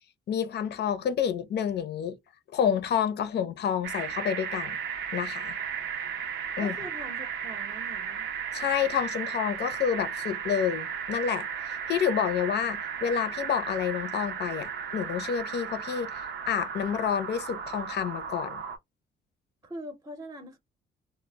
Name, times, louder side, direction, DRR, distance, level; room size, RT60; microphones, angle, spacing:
voice 1, 0.3-2.2 2.5-4.8 5.1-5.6 6.6-6.8 8.5-18.6, left 8 dB, 60° left, 0.5 m, -29 dB
sound 1, 3.8-18.8, right 7 dB, 80° right, 0.6 m, -35 dB
voice 2, 6.6-8.3 19.6-20.6, right 1 dB, 15° right, 0.7 m, -43 dB
2.1 x 2.0 x 3.3 m
cardioid pair, 90°, 20 cm